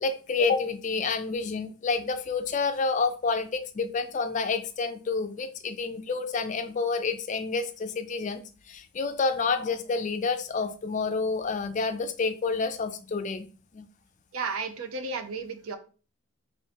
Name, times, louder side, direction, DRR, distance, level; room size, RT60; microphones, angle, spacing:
voice 1, 0.0-8.4 8.7-13.5 13.7-13.9, left 4 dB, 35° left, 9 dB, 0.3 m, -29 dB
voice 2, 14.3-15.8, right 4 dB, 80° right, 8 dB, 0.6 m, -33 dB
4.2 x 2.6 x 3.4 m, 0.38 s
head